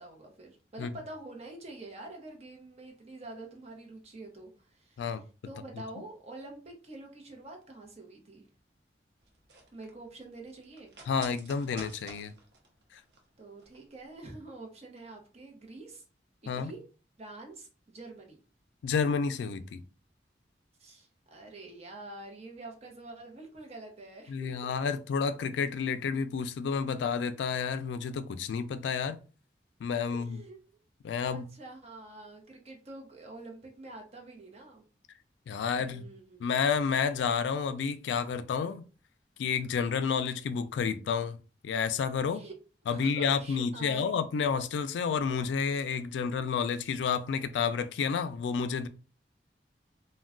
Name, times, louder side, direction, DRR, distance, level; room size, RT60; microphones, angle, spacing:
voice 1, 0.0-5.0 5.4-8.5 9.7-10.9 13.4-16.0 16.4-16.8 17.2-18.4 20.8-24.7 30.1-30.6 31.2-34.8 35.7-36.5 42.3-42.5 42.9-44.0, right 2 dB, 35° right, 0.7 m, -47 dB
sound 1, 9.2-13.8 14.1-14.2, right 3 dB, 75° right, 0.7 m, -51 dB
voice 2, 11.1-12.3 12.9-13.0 16.5-16.7 18.8-19.8 24.3-29.2 29.8-30.4 31.0-31.5 35.5-36.0 36.4-38.8 39.4-41.4 41.6-42.4 42.9-48.9, left 6 dB, 85° left, 0.3 m, -30 dB
2.2 x 2.2 x 3.6 m
head